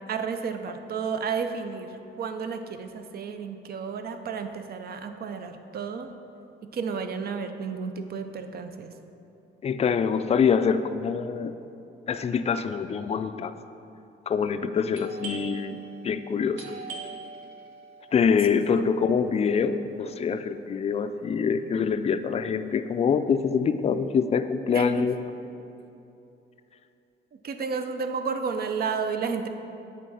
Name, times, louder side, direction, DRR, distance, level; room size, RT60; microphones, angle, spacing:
voice 1, 0.1-6.1 6.7-8.9 18.5-18.8 24.7-25.1 27.4-29.5, right 5 dB, 50° right, 8 dB, 0.6 m, -32 dB
voice 2, 9.6-11.6 12.1-13.5 14.3-16.6 18.1-25.2, left 6 dB, 30° left, 10 dB, 0.4 m, -25 dB
Doorbell, 14.9-20.4, right 4 dB, 90° right, 1.1 m, -44 dB
8.3 x 3.8 x 5.5 m, 2.9 s
cardioid pair, 90°, 20 cm